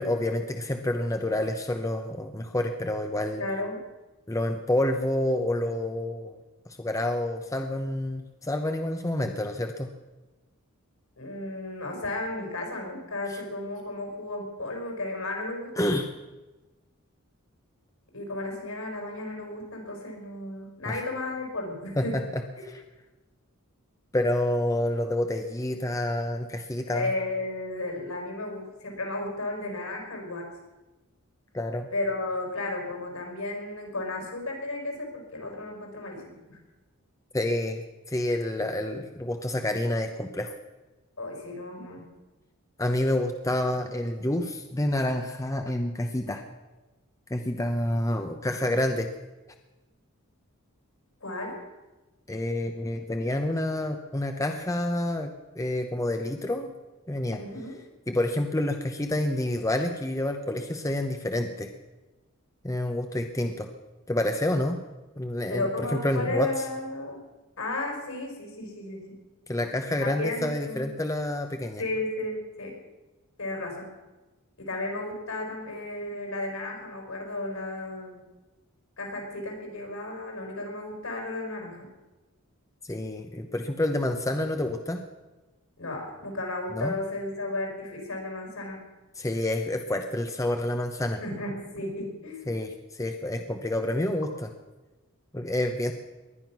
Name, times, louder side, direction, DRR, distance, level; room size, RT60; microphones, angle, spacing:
voice 1, 0.0-3.4 4.3-6.4 6.8-9.9 13.3-13.4 15.8-16.1 20.9-21.0 22.0-22.8 24.1-27.1 31.5-31.9 37.3-40.5 42.8-46.4 47.3-49.1 52.3-55.3 55.6-56.7 57.1-57.4 58.1-61.7 62.6-63.7 64.1-64.8 65.2-66.5 69.5-71.8 82.8-85.0 86.7-86.9 89.2-91.2 92.5-94.5 95.3-95.9, left 1 dB, 15° left, 5 dB, 0.8 m, -28 dB
voice 2, 3.4-3.8 11.2-15.9 18.1-22.2 22.6-22.7 26.9-30.5 31.9-36.6 41.2-42.0 51.2-51.6 57.3-57.8 65.5-67.2 67.6-69.2 70.0-70.9 71.8-72.8 73.4-73.9 74.6-78.2 79.0-81.9 85.8-88.8 91.2-92.5, left 2 dB, 70° left, 1 dB, 5.3 m, -34 dB
19.5 x 11.5 x 6.1 m, 1.1 s
head